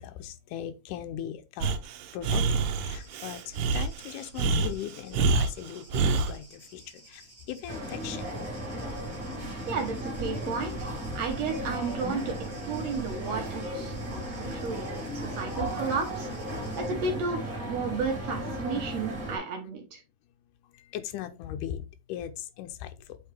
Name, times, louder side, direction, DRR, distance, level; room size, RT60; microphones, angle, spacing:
voice 1, 0.0-1.8 2.1-8.3 14.2-14.3 14.6-14.8 15.3-15.4 20.6-21.8 22.1-23.2, left 10 dB, 90° left, 2.2 m, -39 dB
Breathing, 1.6-6.3, right 4 dB, 80° right, 2.2 m, -27 dB
sound 1, 2.9-16.9, right 2 dB, 15° right, 1.2 m, -54 dB
sound 2, 7.7-19.4, right 1 dB, 30° right, 2.5 m, -35 dB
voice 2, 9.7-12.4 12.6-16.3 16.8-20.0, right 4 dB, 65° right, 2.2 m, -33 dB
8.0 x 3.6 x 3.3 m
omnidirectional pair, 3.6 m